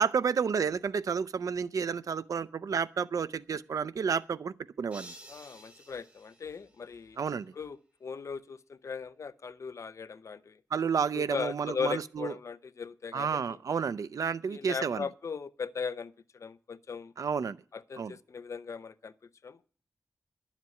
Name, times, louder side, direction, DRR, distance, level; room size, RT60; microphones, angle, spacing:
voice 1, 0.0-5.1 7.2-7.5 10.7-12.3 13.1-15.1 17.2-17.6 18.0-18.1, right 6 dB, 75° right, 0.6 m, -31 dB
sound 1, 4.9-7.2, right 1 dB, 20° right, 2.1 m, -52 dB
voice 2, 5.3-7.2 7.5-10.6 11.1-13.6 14.5-17.1 17.7-19.1 19.4-19.6, left 5 dB, 60° left, 0.6 m, -38 dB
11.0 x 7.3 x 9.4 m
wide cardioid pair, 130°, 6 cm